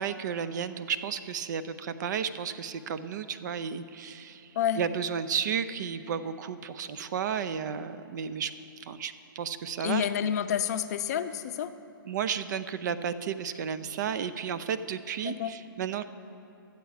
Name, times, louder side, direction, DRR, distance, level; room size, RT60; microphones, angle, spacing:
voice 1, 0.0-4.5 4.8-8.5 8.8-10.0 12.1-16.0, right 7 dB, 55° right, 13 dB, 0.4 m, -33 dB
voice 2, 9.8-11.7 15.2-15.6, left 9 dB, 45° left, 10 dB, 0.5 m, -29 dB
12.0 x 8.1 x 4.8 m, 2.7 s
hypercardioid pair, 135°, 12 cm